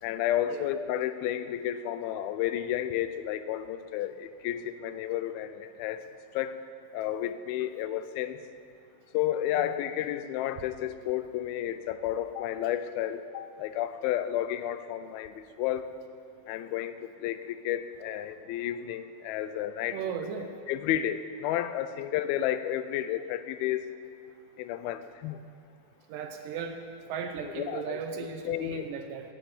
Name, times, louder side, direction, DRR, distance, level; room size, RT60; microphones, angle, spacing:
voice 1, 0.0-6.0 6.3-6.6 6.9-8.4 9.1-15.9 16.5-20.2 20.7-23.9 24.6-25.4 27.6-28.9, left 11 dB, 85° left, 12 dB, 2.4 m, -32 dB
voice 2, 19.9-20.5 26.1-26.8 27.1-29.3, right 6 dB, 75° right, 6 dB, 2.2 m, -36 dB
11.5 x 7.4 x 8.5 m, 2.3 s
omnidirectional pair, 4.3 m